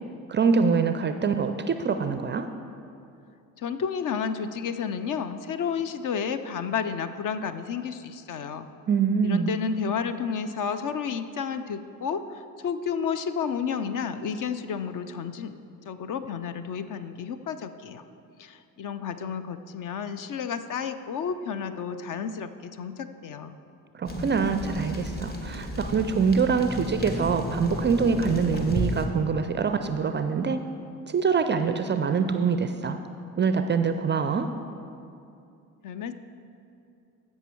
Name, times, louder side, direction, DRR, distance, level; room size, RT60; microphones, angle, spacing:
voice 1, 0.3-2.5 8.9-9.5 23.9-30.6 31.1-33.0 33.4-34.5, right 5 dB, 25° right, 8 dB, 0.4 m, -24 dB
voice 2, 3.6-8.7 9.2-18.0 18.4-23.6 35.8-36.1, left 6 dB, 40° left, 11 dB, 0.6 m, -31 dB
sound 1, 24.1-29.1, equal, 20° left, 1.4 m, -33 dB
14.5 x 5.5 x 4.5 m, 2.6 s
hypercardioid pair, 50°, 48 cm